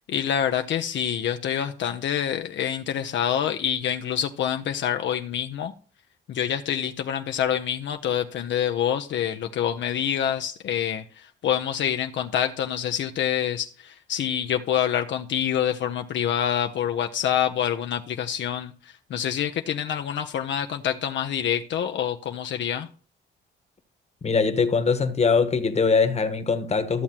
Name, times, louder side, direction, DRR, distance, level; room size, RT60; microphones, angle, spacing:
voice 1, 0.1-5.7 6.3-22.9, left 9 dB, 70° left, 0.7 m, -26 dB
voice 2, 24.2-27.0, left 5 dB, 35° left, 1.3 m, -22 dB
14.0 x 7.3 x 2.9 m
cardioid pair, 90°, 20 cm